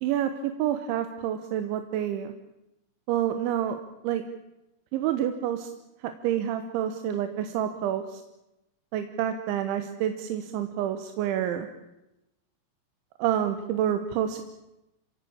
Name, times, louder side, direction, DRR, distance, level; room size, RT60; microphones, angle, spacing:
voice 1, 0.0-2.3 3.1-3.8 4.0-4.2 4.9-5.7 6.0-8.2 8.9-11.7 13.2-14.4, right 10 dB, 75° right, 8 dB, 3.3 m, -28 dB
27.0 x 17.0 x 8.7 m, 0.92 s
omnidirectional pair, 5.9 m